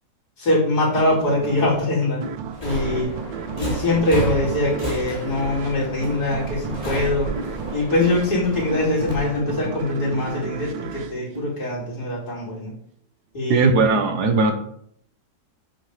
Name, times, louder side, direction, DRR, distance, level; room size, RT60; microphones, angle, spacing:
voice 1, 0.4-2.2 2.6-3.1 3.6-7.3 7.7-12.7 13.3-13.7, left 2 dB, 55° left, -6 dB, 5.2 m, -23 dB
sound 1, 0.9-12.2, right 8 dB, 85° right, 1.5 m, -36 dB
sound 2, 1.5-1.6 2.2-2.4 2.9-3.1 3.9-4.0 4.7-4.8 5.4-5.5 6.0-6.2 6.7-6.8 7.4-7.5 8.0-8.2 8.7-8.8 9.4-9.5 10.0-10.2 10.7-10.8 11.3-11.5, left 1 dB, 20° right, 2.5 m, -33 dB
Subway metro underground, 2.5-9.1, right 1 dB, 20° left, 3.4 m, -30 dB
voice 2, 13.5-14.5, right 4 dB, 60° right, 7 dB, 1.8 m, -18 dB
10.5 x 7.5 x 5.2 m, 0.65 s
omnidirectional pair, 2.0 m